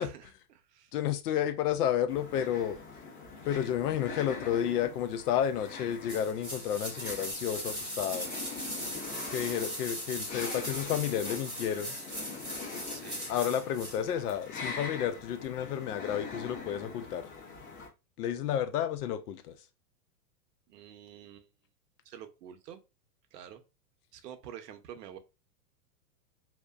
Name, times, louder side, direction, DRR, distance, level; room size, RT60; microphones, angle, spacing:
voice 1, 0.0-0.9 12.9-13.3 20.7-21.5 22.0-22.8 23.3-23.6 24.1-25.2, right 9 dB, 85° right, 0.7 m, -48 dB
voice 2, 0.9-2.8 3.5-8.3 9.3-12.0 13.3-17.3 18.2-19.5, left 10 dB, 75° left, 0.6 m, -31 dB
woman breathing, 2.1-17.9, left 4 dB, 35° left, 0.6 m, -43 dB
sound 1, 6.1-14.0 14.3-14.4, equal, 10° right, 1.2 m, -39 dB
2.8 x 2.1 x 2.3 m
supercardioid pair, 155°, 46 cm